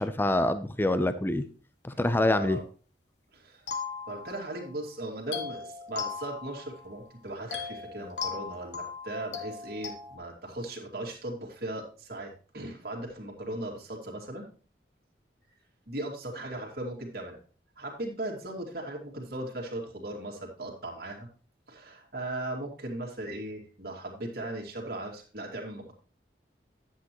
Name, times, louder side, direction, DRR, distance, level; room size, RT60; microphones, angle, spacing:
voice 1, 0.0-1.4 1.8-2.6, left 1 dB, 10° left, 11 dB, 0.5 m, -26 dB
voice 2, 1.9-2.6 3.3-3.7 4.1-14.5 15.9-17.4 17.8-21.3 21.7-25.9, right 1 dB, 60° right, 0 dB, 2.3 m, -38 dB
sound 1, 3.7-4.7 5.3-7.0 7.5-10.2, left 6 dB, 80° left, 1.6 m, -38 dB
10.5 x 8.3 x 3.0 m, 0.38 s
head